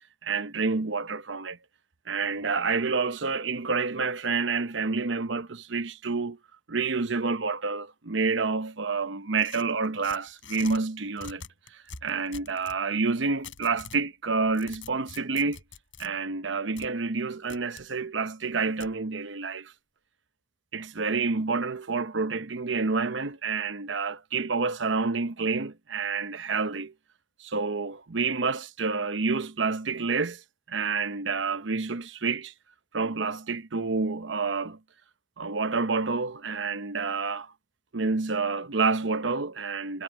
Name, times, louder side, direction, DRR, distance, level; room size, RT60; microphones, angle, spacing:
voice 1, 0.2-1.6 2.1-6.4 6.7-11.4 11.7-15.6 16.0-19.7 20.7-26.9 27.4-30.4 30.7-32.5 32.9-34.8 35.4-37.5 37.9-40.0, right 4 dB, 80° right, 0.9 m, -28 dB
sound 1, 9.4-10.8 11.2-12.8 13.4-14.0 14.4-16.1 16.8-16.9 17.5-17.9 18.8-18.9, left 6 dB, 85° left, 6.7 m, -45 dB
head